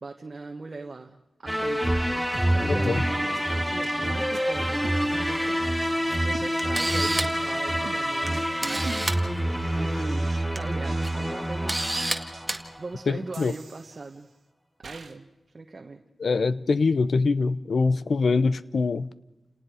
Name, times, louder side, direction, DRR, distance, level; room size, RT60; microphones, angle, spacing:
voice 1, 0.0-9.2 9.8-12.2 12.8-14.3 14.8-15.3 15.5-16.0, right 3 dB, 45° right, 1.4 m, -40 dB
sound 1, 1.5-12.8, equal, ahead, 1.3 m, -27 dB
sound 2, 2.3-2.5 2.8-2.9 3.3-3.4 3.8-4.0 4.3-4.4 4.8-5.5 5.8-5.9 6.3-7.0 7.3-7.5 7.8-10.5 10.8-11.7 12.3-12.4 13.3-14.3 14.8-15.2, right 4 dB, 75° right, 1.7 m, -44 dB
Camera, 6.1-6.2 6.6-7.4 8.3-8.4 8.6-9.2 10.3-10.6 11.0-11.1 11.7-12.2 12.5-12.6, right 1 dB, 15° right, 2.0 m, -28 dB
voice 2, 13.1-13.5 16.2-19.1, left 4 dB, 70° left, 0.8 m, -24 dB
29.5 x 18.5 x 5.0 m
wide cardioid pair, 75°, 0 cm